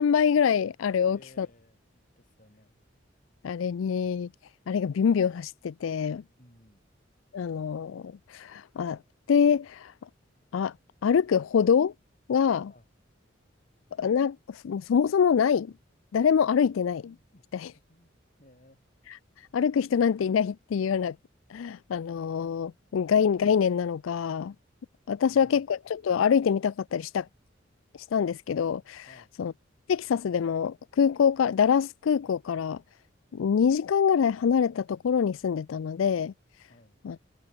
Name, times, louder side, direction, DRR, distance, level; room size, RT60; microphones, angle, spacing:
voice 1, 0.0-1.5 3.4-4.3 4.7-6.2 7.3-9.0 9.3-9.9 10.5-10.7 11.0-11.9 12.3-12.7 14.0-15.7 16.1-17.1 17.5-17.7 19.5-21.2 21.5-24.5 25.1-27.3 28.1-29.1 29.4-29.5 29.9-32.8 33.3-36.3 37.0-37.2, left 7 dB, 85° left, 0.4 m, -25 dB
voice 2, 1.0-2.7 6.4-6.8 12.7-12.9 17.3-17.4 17.9-18.8 25.2-25.7 29.1-29.4 36.7-37.0, left 1 dB, 40° left, 4.3 m, -58 dB
head